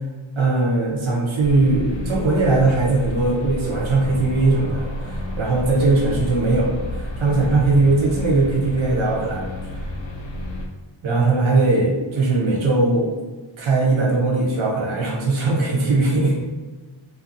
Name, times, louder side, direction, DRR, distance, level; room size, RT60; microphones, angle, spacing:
voice 1, 0.3-9.5 11.0-13.1 13.6-16.3, right 3 dB, 70° right, -3 dB, 0.8 m, -19 dB
sound 1, 1.4-10.7, equal, 65° left, 0.6 m, -30 dB
2.5 x 2.4 x 2.5 m, 1.3 s
wide cardioid pair, 105°, 49 cm